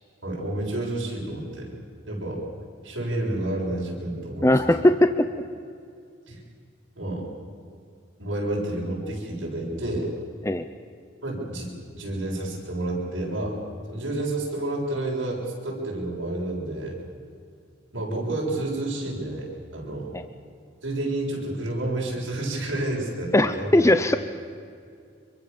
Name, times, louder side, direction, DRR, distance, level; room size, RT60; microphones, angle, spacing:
voice 1, 0.2-1.7 2.1-2.4 2.8-4.9 6.3-6.4 7.0-7.3 8.2-10.1 11.2-13.6 13.9-17.0 17.9-20.1 20.8-23.9, right 1 dB, 65° right, -3 dB, 7.6 m, -30 dB
voice 2, 4.4-5.3 10.4-10.7 20.1-20.2 23.3-24.2, left 1 dB, 15° left, 9 dB, 0.6 m, -19 dB
26.0 x 23.0 x 7.1 m, 2.3 s
head